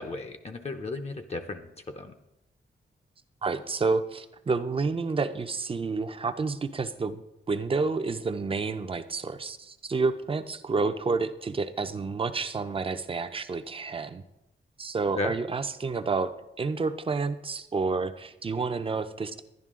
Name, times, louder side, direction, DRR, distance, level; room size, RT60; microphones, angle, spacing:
voice 1, 0.0-2.1 15.1-15.3, left 3 dB, 35° left, 5 dB, 0.6 m, -35 dB
voice 2, 3.4-7.2 7.5-14.2 14.8-16.3 16.6-19.4, right 4 dB, 30° right, 9 dB, 0.5 m, -29 dB
11.0 x 11.0 x 3.7 m, 0.88 s
wide cardioid pair, 150°, 19 cm